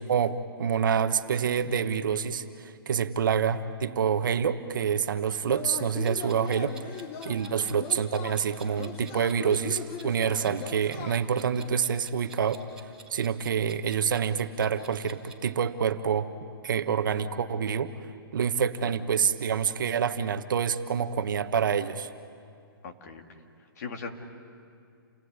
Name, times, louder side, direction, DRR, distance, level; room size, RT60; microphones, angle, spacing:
voice 1, 0.1-6.9 7.2-12.6 13.1-16.3 16.6-17.9 18.3-22.1, right 7 dB, 60° right, 9 dB, 1.2 m, -27 dB
Yell / Cheering, 5.4-11.5, left 8 dB, 15° left, 0.7 m, -40 dB
Clock, 6.0-15.4, right 5 dB, 5° right, 2.1 m, -51 dB
voice 2, 22.8-23.4 23.8-24.1, left 5 dB, 45° left, 4 dB, 2.4 m, -40 dB
29.0 x 20.0 x 9.6 m, 2.4 s
hypercardioid pair, 170°, 12 cm